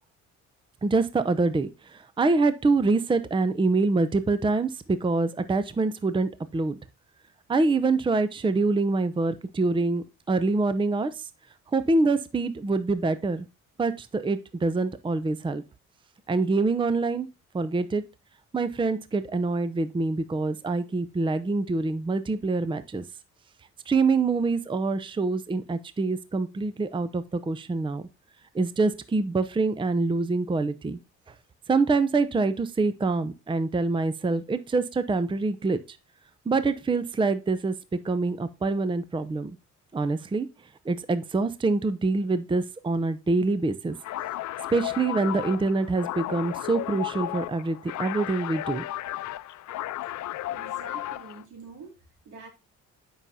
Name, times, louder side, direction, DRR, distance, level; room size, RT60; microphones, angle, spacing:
voice 1, 0.8-6.7 7.5-11.3 11.7-13.5 13.8-15.6 16.3-17.3 17.5-18.0 18.5-23.1 23.9-28.0 28.5-31.0 31.7-36.0 36.5-37.7 38.0-39.5 39.9-40.5 40.9-44.0 44.7-48.8, right 3 dB, 15° right, 13 dB, 0.6 m, -25 dB
sound 1, 44.0-51.4, left 14 dB, 70° left, 0.6 m, -34 dB
voice 2, 50.5-52.5, right 4 dB, 80° right, 2 dB, 3.1 m, -46 dB
9.6 x 5.6 x 2.7 m, 0.28 s
cardioid pair, 90°, 30 cm